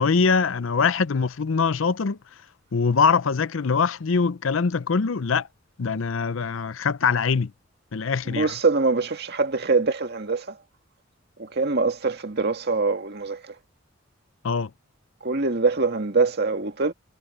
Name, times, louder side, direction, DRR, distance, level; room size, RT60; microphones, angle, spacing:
voice 1, 0.0-2.2 2.7-5.5 5.8-7.5 7.9-8.5 14.4-14.7, left 5 dB, 75° left, 0.6 m, -23 dB
voice 2, 8.3-10.6 11.4-13.5 15.2-16.9, right 3 dB, 50° right, 1.9 m, -24 dB
head